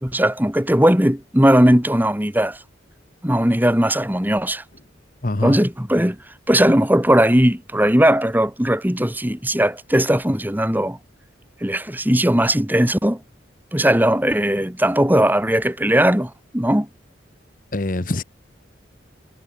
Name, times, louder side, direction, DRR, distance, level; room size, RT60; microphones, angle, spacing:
voice 1, 0.0-2.6 3.2-4.6 5.4-6.2 6.5-11.0 11.6-13.2 13.7-16.9, right 1 dB, 10° right, 2.4 m, -18 dB
voice 2, 5.2-5.6 17.7-18.2, left 2 dB, 45° left, 1.1 m, -24 dB
head